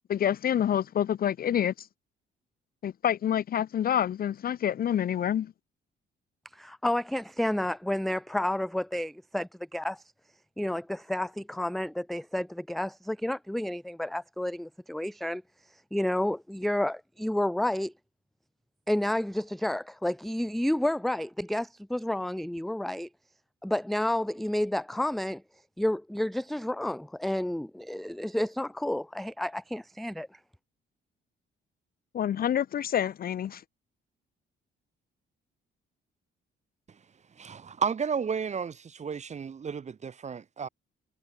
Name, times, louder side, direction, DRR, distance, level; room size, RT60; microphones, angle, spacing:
voice 1, 0.1-1.9 2.8-5.5 32.1-33.6, left 10 dB, 50° left, 0.5 m, -27 dB
voice 2, 6.5-10.0 10.6-15.4 15.9-17.9 18.9-23.1 23.6-25.4 25.8-30.3, left 1 dB, ahead, 0.5 m, -30 dB
voice 3, 37.4-40.7, right 6 dB, 35° right, 0.9 m, -32 dB
cardioid pair, 90°, 20 cm